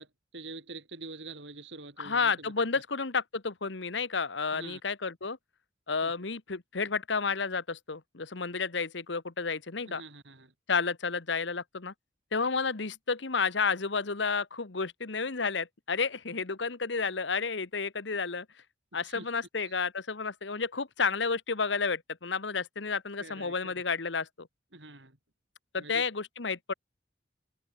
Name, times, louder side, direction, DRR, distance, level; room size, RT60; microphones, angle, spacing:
voice 1, 0.0-2.5 4.5-4.8 6.0-6.1 9.8-10.5 19.0-19.3 19.6-19.7 23.2-23.7 24.7-25.2 25.8-26.0, right 3 dB, 70° right, 6.0 m, -46 dB
voice 2, 2.0-5.4 5.9-10.0 10.7-11.9 12.3-18.4 18.9-24.5 25.7-26.7, left 5 dB, 70° left, 1.3 m, -31 dB
head